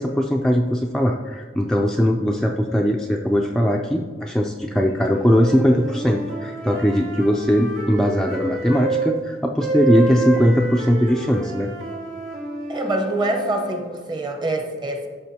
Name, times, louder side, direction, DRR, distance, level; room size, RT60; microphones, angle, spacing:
voice 1, 0.0-11.7, equal, 5° left, 0 dB, 0.3 m, -20 dB
sound 1, 5.0-9.1 9.6-13.8, right 3 dB, 70° right, 2.0 m, -29 dB
voice 2, 12.7-15.1, right 2 dB, 25° right, 3 dB, 1.0 m, -25 dB
13.0 x 5.8 x 2.8 m, 1.5 s
head